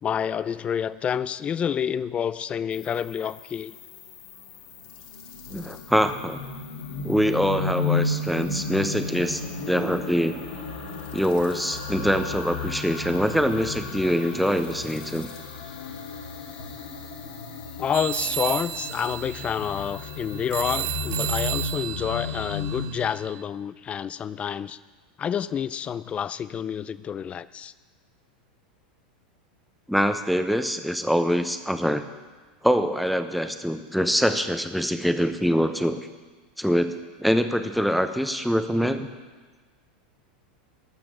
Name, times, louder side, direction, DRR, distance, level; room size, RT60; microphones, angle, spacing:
voice 1, 0.0-3.7 17.8-24.8 25.2-27.7, left 8 dB, 25° left, 17 dB, 0.4 m, -28 dB
sound 1, 2.7-21.8, left 10 dB, 55° left, 1.8 m, -48 dB
sound 2, 4.8-22.9, left 4 dB, 80° left, 3.1 m, -33 dB
voice 2, 5.5-6.4 7.0-10.4 11.1-15.3 29.9-32.0 32.6-36.0 36.6-39.1, equal, ahead, 9 dB, 0.7 m, -24 dB
sound 3, 17.9-23.4, right 18 dB, 45° right, 0.4 m, -33 dB
12.5 x 6.9 x 6.4 m, 1.3 s
hypercardioid pair, 115°, 5 cm